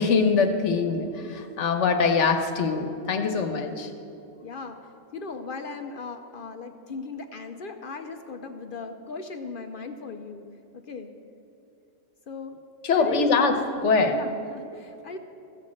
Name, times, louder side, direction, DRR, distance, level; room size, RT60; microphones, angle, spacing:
voice 1, 0.0-3.9 12.8-14.2, left 4 dB, 80° left, 6 dB, 1.3 m, -23 dB
voice 2, 4.4-10.4 10.7-11.1 12.3-12.6 12.9-13.4 14.1-15.2, left 4 dB, 55° left, 6 dB, 0.7 m, -37 dB
15.0 x 6.4 x 7.5 m, 2.9 s
omnidirectional pair, 1.2 m